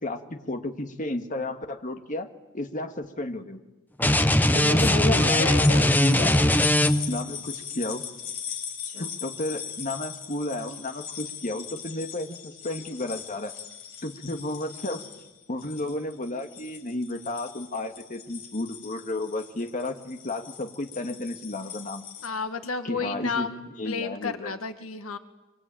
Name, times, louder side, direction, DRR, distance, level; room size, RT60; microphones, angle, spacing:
voice 1, 0.0-2.3 2.5-3.6 4.5-6.5 7.1-8.0 8.8-13.5 14.0-15.0 15.5-22.0 22.8-23.5 23.8-24.5, left 2 dB, 40° left, 6 dB, 1.7 m, -32 dB
sound 1, 4.0-7.2, left 1 dB, 10° left, 0.9 m, -20 dB
voice 2, 4.7-5.9 22.2-25.2, left 4 dB, 80° left, 8 dB, 1.8 m, -32 dB
sound 2, 5.6-22.3, left 8 dB, 60° left, 5.4 m, -39 dB
26.0 x 25.5 x 9.0 m, 1.1 s
head